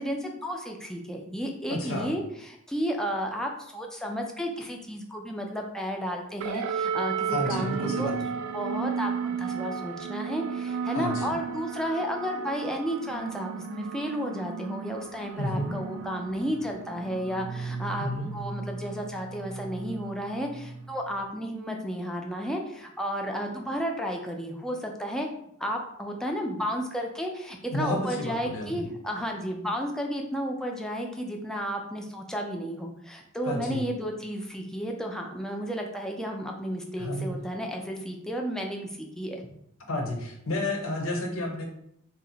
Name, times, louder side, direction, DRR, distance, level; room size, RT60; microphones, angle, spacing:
voice 1, 0.0-8.1 8.5-25.3 25.6-39.4, equal, 5° left, 1 dB, 0.4 m, -32 dB
voice 2, 1.7-2.1 7.3-8.3 10.9-11.4 15.4-15.7 18.0-18.3 27.7-28.9 33.4-33.8 37.0-37.4 39.9-41.6, left 1 dB, 70° left, 2 dB, 0.7 m, -31 dB
sound 1, 6.4-21.2, right 6 dB, 80° right, 0.3 m, -34 dB
2.7 x 2.1 x 3.8 m, 0.73 s
head